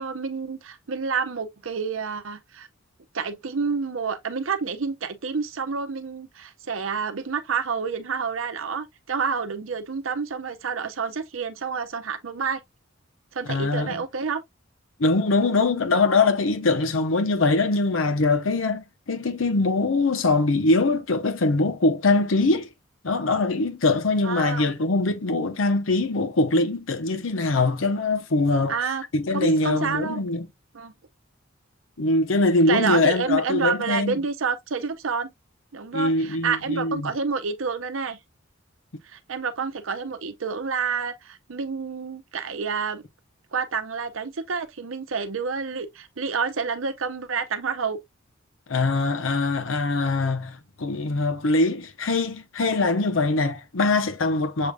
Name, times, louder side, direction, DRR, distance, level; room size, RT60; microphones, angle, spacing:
voice 1, 0.0-2.7 3.1-12.6 13.3-14.4 24.2-24.7 28.7-29.0 29.3-30.2 30.7-30.9 32.7-35.3 35.7-38.2 39.0-43.1 43.5-48.0, right 5 dB, 90° right, 0.7 m, -28 dB
voice 2, 13.5-14.0 15.0-22.7 23.0-28.7 29.1-30.5 32.0-34.2 35.9-37.1 48.7-54.7, left 3 dB, 85° left, 0.8 m, -22 dB
6.7 x 3.4 x 2.3 m
head